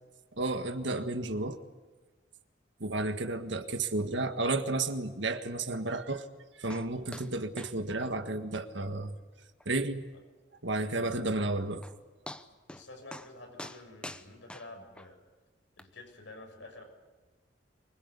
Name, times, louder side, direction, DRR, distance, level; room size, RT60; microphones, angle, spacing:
voice 1, 0.4-1.6 2.8-6.2 6.6-9.1 9.6-10.1 10.6-11.8, right 2 dB, 75° right, 8 dB, 1.7 m, -32 dB
sound 1, 6.7-6.9 7.1-7.3 7.6-7.7 8.0-8.1 8.5-8.6 9.0-9.1 9.6-9.7 11.4-11.5 11.8-12.0 12.3-12.8 13.1-13.3 13.6-15.1 15.8-15.9, left 1 dB, 5° left, 0.9 m, -45 dB
voice 2, 10.8-11.2 12.7-15.2 15.8-16.8, left 2 dB, 80° left, 3 dB, 6.7 m, -49 dB
24.5 x 22.0 x 8.4 m, 1.3 s
head